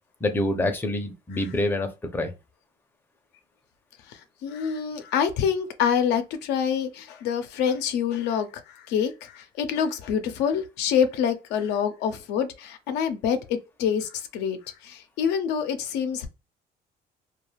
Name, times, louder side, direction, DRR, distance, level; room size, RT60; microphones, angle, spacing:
voice 1, 0.2-2.3, left 1 dB, 10° left, 0.5 m, -26 dB
voice 2, 4.1-16.3, left 7 dB, 85° left, 0.5 m, -26 dB
2.3 x 2.3 x 3.1 m
cardioid pair, 110°, 17 cm